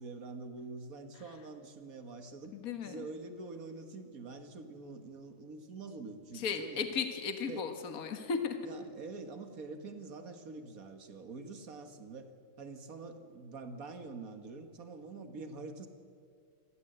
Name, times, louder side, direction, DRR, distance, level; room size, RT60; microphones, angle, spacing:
voice 1, 0.0-2.6 2.8-6.9 7.5-7.7 8.6-12.3 12.6-15.9, right 3 dB, 45° right, 7 dB, 1.9 m, -46 dB
voice 2, 2.5-3.1 6.3-8.6, left 6 dB, 50° left, 7 dB, 1.9 m, -35 dB
27.0 x 13.5 x 8.0 m, 2.2 s
omnidirectional pair, 2.2 m